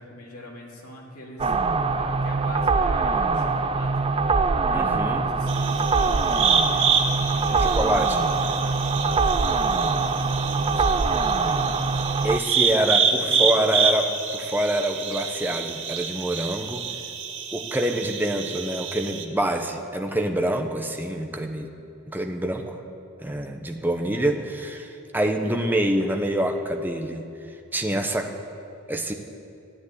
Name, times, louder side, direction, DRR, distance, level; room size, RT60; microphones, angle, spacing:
voice 1, 0.0-1.5 1.9-7.7 8.1-11.6 12.6-13.8, left 1 dB, 80° left, -2 dB, 2.9 m, -42 dB
sound 1, 1.4-12.4, right 4 dB, 25° right, 0.4 m, -23 dB
voice 2, 4.7-5.2 7.5-8.2 12.2-14.1 14.3-16.8 17.5-21.7 22.1-22.8 23.2-27.2 27.7-28.3 28.9-29.1, right 1 dB, 10° right, 4 dB, 0.9 m, -26 dB
sound 2, 5.5-19.2, right 6 dB, 60° right, 1.2 m, -27 dB
14.0 x 9.4 x 9.8 m, 2.7 s
head